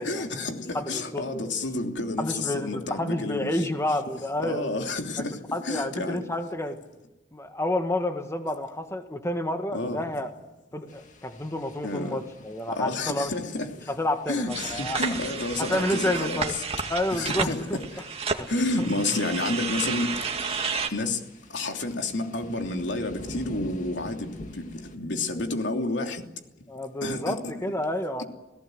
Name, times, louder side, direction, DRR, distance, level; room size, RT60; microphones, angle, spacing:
voice 1, 0.0-3.7 4.4-6.2 9.7-10.0 11.8-12.2 12.7-13.9 14.3-16.6 17.1-18.0 18.5-20.6 20.9-21.2 21.5-26.2 27.0-27.5 28.2-28.3, left 2 dB, 80° left, 3.1 m, -30 dB
voice 2, 0.7-1.5 2.2-4.7 5.5-6.8 7.3-10.3 10.7-13.3 13.9-15.0 15.6-16.5 16.9-17.8 18.4-18.5 18.8-18.9 26.7-28.2, left 1 dB, 15° left, 1.8 m, -29 dB
sound 1, 10.9-25.0, left 1 dB, 45° left, 2.3 m, -48 dB
sound 2, 14.5-20.9, right 5 dB, 35° right, 2.1 m, -31 dB
28.5 x 18.0 x 8.0 m
head